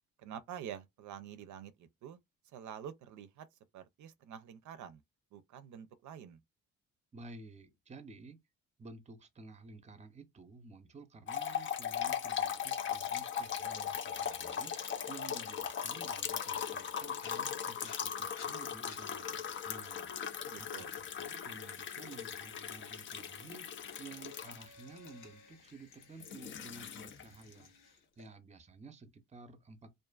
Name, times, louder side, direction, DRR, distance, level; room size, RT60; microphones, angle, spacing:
voice 1, 0.2-2.2 2.4-5.0 5.3-6.4 20.4-20.9, right 9 dB, 70° right, 0.5 m, -48 dB
voice 2, 7.1-8.4 8.8-30.0, right 3 dB, 20° right, 0.7 m, -53 dB
sound 1, 11.3-25.1 26.0-27.4, left 8 dB, 40° left, 0.5 m, -39 dB
sound 2, 14.1-20.5 20.8-28.3, left 5 dB, 85° left, 1.1 m, -58 dB
2.5 x 2.4 x 2.3 m
cardioid pair, 85°, 31 cm